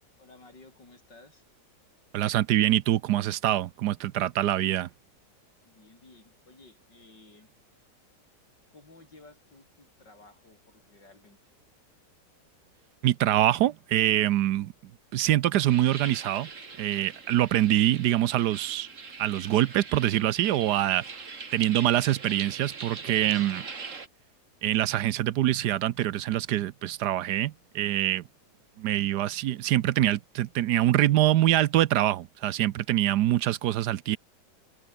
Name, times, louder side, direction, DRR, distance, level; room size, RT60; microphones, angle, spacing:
voice 1, 0.2-1.5 5.6-7.5 8.7-11.5, left 3 dB, 80° left, 6.4 m, -55 dB
voice 2, 2.1-4.9 13.0-14.7 15.1-16.5 16.8-18.9 19.2-21.0 21.5-23.6 24.6-28.2 28.8-34.2, right 13 dB, 75° right, 1.2 m, -24 dB
sound 1, 15.7-24.1, right 4 dB, 45° right, 2.6 m, -42 dB
open air
omnidirectional pair, 1.9 m